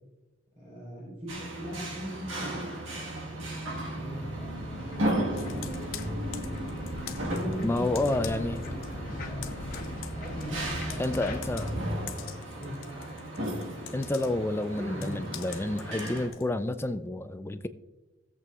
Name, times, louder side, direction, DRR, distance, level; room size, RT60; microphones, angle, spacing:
voice 1, 0.6-5.8 7.1-11.8 12.6-12.8 14.7-15.2, equal, 40° right, -6 dB, 3.4 m, -40 dB
sound 1, 1.3-16.3, right 1 dB, 70° right, 1.6 m, -35 dB
sound 2, 3.7-11.7, left 1 dB, 45° left, 1.2 m, -41 dB
Computer keyboard, 5.4-8.9 9.2-16.5, left 11 dB, 90° left, 0.6 m, -45 dB
voice 2, 7.6-8.6 11.0-11.7 13.9-17.7, left 2 dB, 10° left, 10 dB, 0.4 m, -29 dB
16.5 x 7.7 x 2.4 m, 1.1 s
head